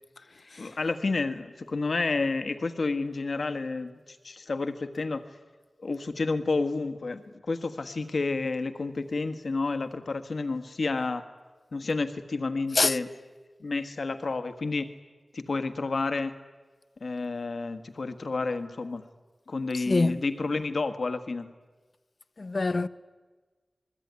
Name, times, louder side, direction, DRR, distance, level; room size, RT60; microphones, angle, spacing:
voice 1, 0.6-5.2 5.8-11.2 11.7-13.1 13.6-14.9 15.3-16.3 17.0-19.0 19.5-21.5, left 3 dB, 75° left, 1.5 m, -30 dB
voice 2, 19.9-20.2 22.4-22.9, left 3 dB, 60° left, 0.8 m, -25 dB
28.0 x 21.0 x 9.6 m
wide cardioid pair, 70°, 0 cm